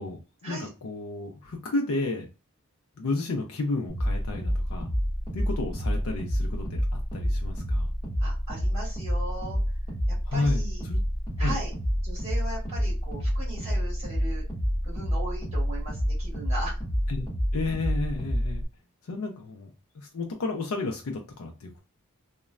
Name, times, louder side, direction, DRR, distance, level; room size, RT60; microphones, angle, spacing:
voice 1, 0.0-2.3 3.0-4.9 5.3-7.9 10.3-10.6 10.9-11.0 11.4-11.6 17.1-17.3 17.5-18.6 19.0-21.8, left 3 dB, 70° left, 2 dB, 0.4 m, -32 dB
sound 1, 3.9-18.7, equal, 15° left, 1.0 m, -28 dB
voice 2, 8.2-9.6 10.1-10.8 11.4-11.7 12.0-14.4 14.8-16.8, right 2 dB, 25° right, -4 dB, 1.5 m, -38 dB
3.0 x 2.1 x 2.3 m, 0.32 s
head